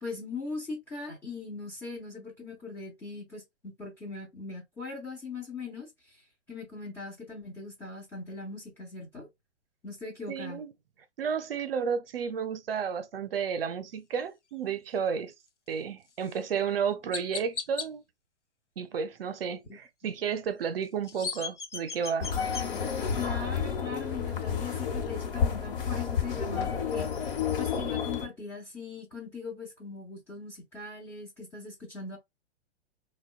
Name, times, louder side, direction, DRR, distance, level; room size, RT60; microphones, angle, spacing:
voice 1, 0.0-5.9 6.5-9.3 9.8-10.6 20.0-20.1 23.2-27.1 27.6-32.2, left 4 dB, 5° left, 0.4 m, -40 dB
voice 2, 10.3-10.7 11.2-15.3 15.7-18.0 18.8-22.3, right 7 dB, 55° right, 0.7 m, -32 dB
Chirp tweet, 16.2-16.4 17.1-17.9 20.8-22.7, left 5 dB, 85° left, 0.7 m, -36 dB
sound 1, 22.2-28.3, left 7 dB, 50° left, 1.1 m, -30 dB
4.0 x 2.2 x 2.4 m
figure-of-eight pair, 115°, 35 cm